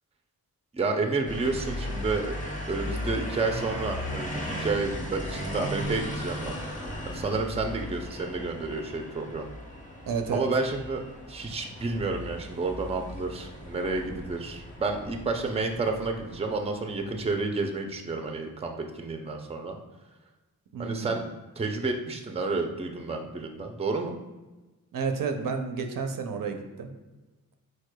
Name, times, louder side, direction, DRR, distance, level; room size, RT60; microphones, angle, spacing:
voice 1, 0.7-2.3 2.7-6.6 7.1-9.5 10.3-11.0 11.3-19.8 20.8-21.3 21.6-24.2, right 3 dB, 20° right, 4 dB, 0.5 m, -30 dB
sound 1, 1.3-17.4, equal, 20° left, 1.1 m, -37 dB
voice 2, 10.1-10.5 20.7-21.2 24.9-26.9, right 5 dB, 70° right, 6 dB, 0.6 m, -31 dB
4.8 x 4.3 x 2.2 m, 1.2 s
wide cardioid pair, 90°, 35 cm